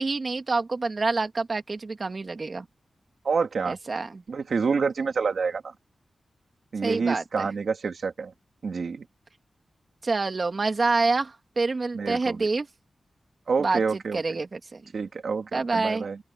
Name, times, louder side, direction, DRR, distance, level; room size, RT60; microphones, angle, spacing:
voice 1, 0.0-2.7 3.7-4.2 6.8-7.5 10.0-12.7 13.6-13.8 14.1-14.8 15.5-16.0, right 3 dB, 40° right, 2.4 m, -27 dB
voice 2, 3.2-3.8 4.3-5.7 6.7-8.3 8.6-9.0 11.9-12.4 13.5-14.2 14.9-16.2, right 5 dB, 65° right, 2.9 m, -27 dB
open air
wide cardioid pair, 135°, 0 cm